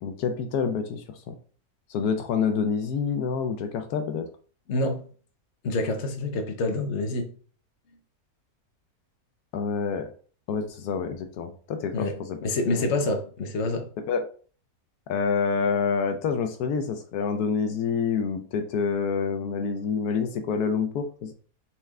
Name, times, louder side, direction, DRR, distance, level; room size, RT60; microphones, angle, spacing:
voice 1, 0.0-1.4 1.9-4.3 4.8-5.0 9.5-10.1 10.5-12.4 12.7-12.9 14.0-14.2 15.1-21.3, left 6 dB, 80° left, 6 dB, 1.1 m, -27 dB
voice 2, 4.7-5.0 5.6-7.3 11.9-13.9, left 2 dB, 50° left, 4 dB, 1.1 m, -27 dB
4.4 x 3.3 x 3.5 m, 0.41 s
omnidirectional pair, 1.6 m